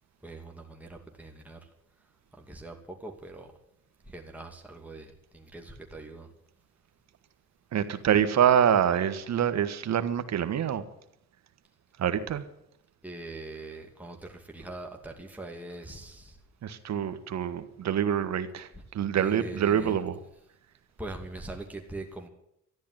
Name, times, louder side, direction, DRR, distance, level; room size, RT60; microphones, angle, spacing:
voice 1, 0.2-1.6 2.4-3.5 4.1-6.3 13.0-16.4 19.2-20.0 21.0-22.3, right 2 dB, 5° right, 1 dB, 2.5 m, -42 dB
voice 2, 7.7-10.8 12.0-12.4 16.6-18.7 18.9-20.2, right 9 dB, 60° right, 10 dB, 1.5 m, -26 dB
13.0 x 10.5 x 9.9 m, 0.78 s
cardioid pair, 90°, 30 cm